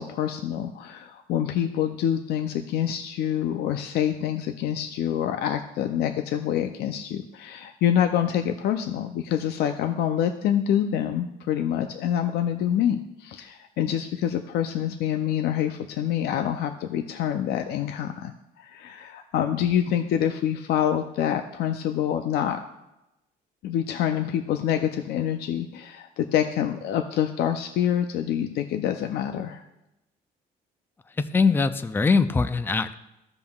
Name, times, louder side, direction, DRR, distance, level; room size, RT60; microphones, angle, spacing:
voice 1, 0.0-22.6 23.6-29.6, left 10 dB, 75° left, 6 dB, 0.5 m, -26 dB
voice 2, 31.2-32.9, left 4 dB, 10° left, 12 dB, 0.4 m, -22 dB
15.0 x 5.3 x 2.3 m, 0.92 s
cardioid pair, 110°, 17 cm